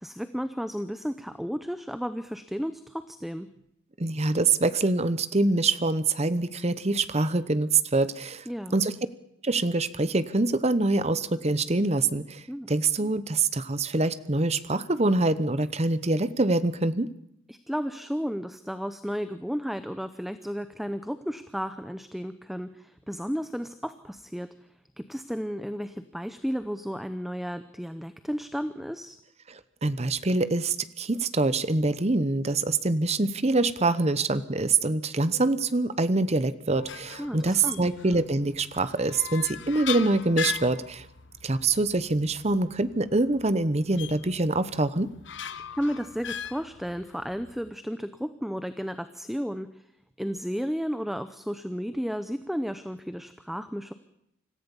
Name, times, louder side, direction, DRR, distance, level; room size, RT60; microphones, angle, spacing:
voice 1, 0.0-3.5 8.5-8.8 12.5-12.7 17.5-24.5 25.0-29.2 37.2-37.8 45.8-49.8 50.2-53.9, equal, ahead, 11 dB, 0.7 m, -33 dB
voice 2, 4.0-8.4 8.7-8.9 9.4-17.1 29.5-41.1 41.4-45.1, right 2 dB, 30° right, 14 dB, 0.9 m, -25 dB
sound 1, 36.8-47.7, left 8 dB, 60° left, 1.0 m, -40 dB
26.0 x 14.5 x 7.1 m, 0.79 s
head